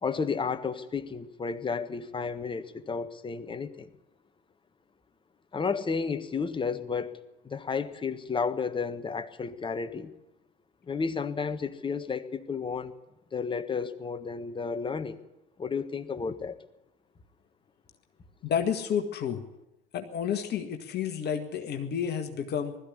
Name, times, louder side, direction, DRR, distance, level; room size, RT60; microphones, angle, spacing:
voice 1, 0.0-3.9 5.5-10.1 10.9-12.9 13.3-15.2 15.6-16.6, left 5 dB, 15° left, 10 dB, 1.5 m, -32 dB
voice 2, 18.4-19.4 19.9-22.8, left 8 dB, 35° left, 6 dB, 1.8 m, -30 dB
20.0 x 14.0 x 9.8 m, 0.93 s
figure-of-eight pair, 70°, 29 cm